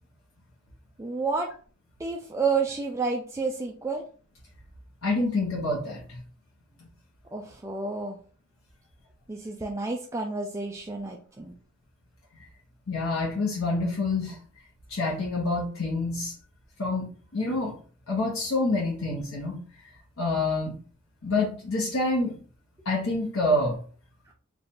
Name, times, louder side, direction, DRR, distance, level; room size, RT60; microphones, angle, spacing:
voice 1, 1.0-1.5 2.0-4.0 7.3-8.2 9.3-11.5, right 4 dB, 15° right, 0 dB, 0.4 m, -30 dB
voice 2, 5.0-6.2 12.4-12.5 12.9-14.4 14.9-16.3 16.8-17.1 17.3-17.7 18.1-19.5 20.2-20.7 21.2-22.4 22.8-23.8, left 2 dB, 80° left, -4 dB, 1.0 m, -27 dB
3.3 x 2.3 x 4.2 m, 0.42 s
head